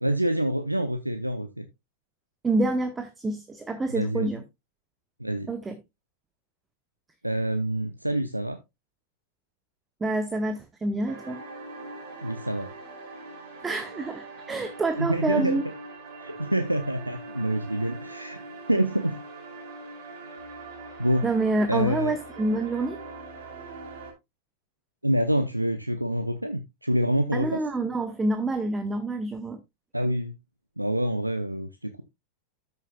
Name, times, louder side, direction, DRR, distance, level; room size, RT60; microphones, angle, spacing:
voice 1, 0.0-1.7 3.9-4.3 5.2-5.5 7.2-8.6 12.2-12.7 15.0-15.6 16.2-18.4 18.7-19.2 20.3-20.4 21.0-21.3 21.7-22.1 25.0-27.6 29.9-30.3 30.8-32.0, right 1 dB, 85° right, 0.6 m, -26 dB
voice 2, 2.4-4.4 5.5-5.8 10.0-11.4 13.6-15.6 21.2-23.0 27.3-29.6, right 2 dB, 15° right, 0.8 m, -27 dB
sound 1, 11.1-24.1, right 3 dB, 50° right, 2.7 m, -42 dB
13.0 x 6.8 x 2.3 m
figure-of-eight pair, 90°, 0 cm